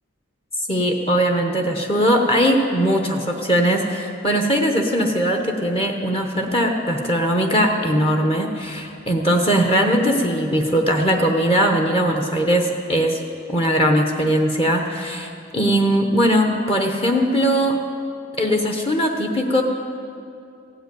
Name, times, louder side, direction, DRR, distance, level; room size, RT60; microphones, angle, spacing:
voice 1, 0.7-13.2 13.5-17.8 18.4-19.6, equal, 25° left, 3 dB, 0.9 m, -20 dB
15.5 x 7.9 x 9.3 m, 2.5 s
head